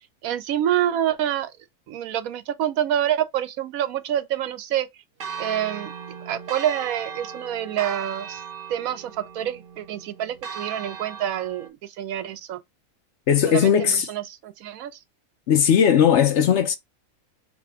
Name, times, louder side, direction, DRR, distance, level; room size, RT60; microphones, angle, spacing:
voice 1, 0.2-1.5 1.9-4.9 5.4-5.9 6.3-8.4 8.7-12.6 13.5-14.9, right 11 dB, 70° right, 1.1 m, -27 dB
Church bell, 5.2-11.7, right 6 dB, 50° right, 0.7 m, -37 dB
voice 2, 13.3-14.1 15.5-16.7, left 8 dB, 60° left, 0.8 m, -18 dB
5.0 x 2.2 x 4.9 m
omnidirectional pair, 1.6 m